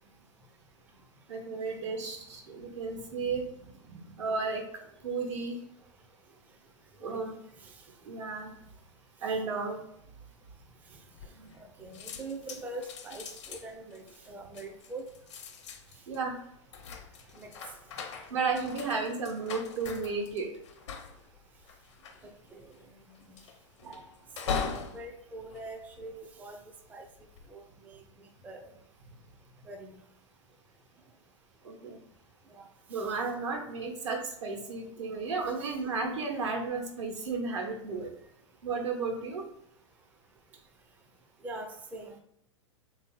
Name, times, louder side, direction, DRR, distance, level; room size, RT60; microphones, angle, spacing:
voice 1, 1.3-5.6 7.0-7.3 8.0-8.5 9.2-9.8 11.3-11.5 11.8-11.9 16.1-16.4 17.9-18.0 18.3-20.5 23.8-24.1 24.6-24.7 31.6-32.0 32.9-38.1 38.6-39.4, right 4 dB, 75° right, 1 dB, 1.2 m, -34 dB
sound 1, 11.2-11.7 11.9-26.5 27.1-27.5, left 6 dB, 70° left, 0.6 m, -41 dB
voice 2, 11.8-15.1 17.4-17.5 22.5-22.7 23.3-23.4 24.5-26.6 26.9-27.1 27.5-28.0 28.4-28.7 29.7-30.0 32.5-32.7 32.9-33.0 41.4-42.2, right 2 dB, 10° right, 3 dB, 0.4 m, -43 dB
3.5 x 2.8 x 4.3 m, 0.75 s
hypercardioid pair, 110°, 15 cm